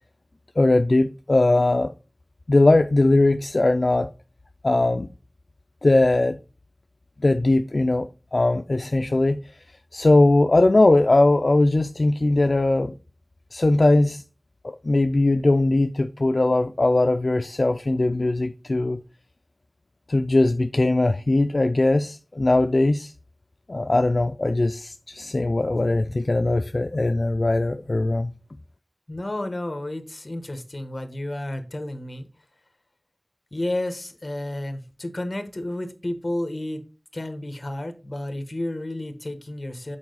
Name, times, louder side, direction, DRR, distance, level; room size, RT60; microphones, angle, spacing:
voice 1, 0.6-1.9 2.5-4.1 4.6-5.1 5.8-6.4 7.2-9.5 9.9-12.9 13.5-14.2 14.6-19.0 20.1-23.1 23.7-28.3, left 2 dB, 80° left, 0.4 m, -20 dB
voice 2, 29.1-32.3 33.5-36.9 37.1-40.0, left 1 dB, 60° left, 1.2 m, -31 dB
7.2 x 4.7 x 4.0 m
wide cardioid pair, 40°, 0 cm